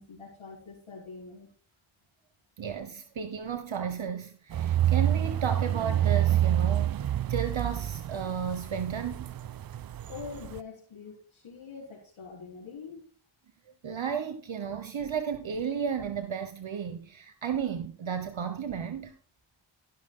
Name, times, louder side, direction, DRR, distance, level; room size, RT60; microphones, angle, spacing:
voice 1, 0.0-1.5 10.1-13.1, left 5 dB, 75° left, 4.2 m, -44 dB
voice 2, 2.6-9.3 13.8-19.1, right 7 dB, 65° right, 1.3 m, -33 dB
sound 1, 4.5-10.6, right 11 dB, 45° right, 0.5 m, -28 dB
15.0 x 6.3 x 3.8 m
cardioid pair, 40°, 49 cm